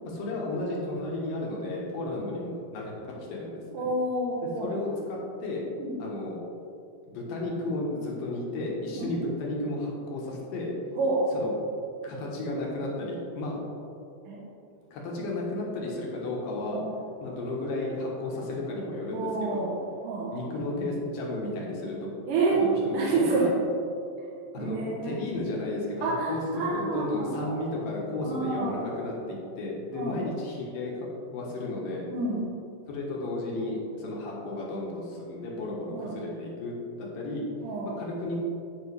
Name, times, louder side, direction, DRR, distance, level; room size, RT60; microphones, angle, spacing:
voice 1, 0.0-3.9 4.4-5.6 6.0-6.4 7.1-10.7 11.3-11.5 12.0-13.6 14.9-16.8 17.2-19.7 20.3-22.1 22.5-23.5 24.5-31.1 31.3-32.1 32.9-36.7 37.0-37.4 38.0-38.4, left 2 dB, 65° left, -2 dB, 2.7 m, -33 dB
voice 2, 3.7-4.9 5.8-6.0 9.0-9.1 11.0-11.3 14.2-14.4 16.7-16.8 19.1-19.8 20.0-20.4 22.3-22.6 22.9-23.6 24.6-25.2 26.0-27.6 28.2-28.7 29.9-30.2 32.1-32.5 35.9-36.1 37.6-37.9, right 3 dB, 65° right, -7 dB, 2.5 m, -29 dB
15.0 x 5.4 x 3.4 m, 2.6 s
omnidirectional pair, 4.8 m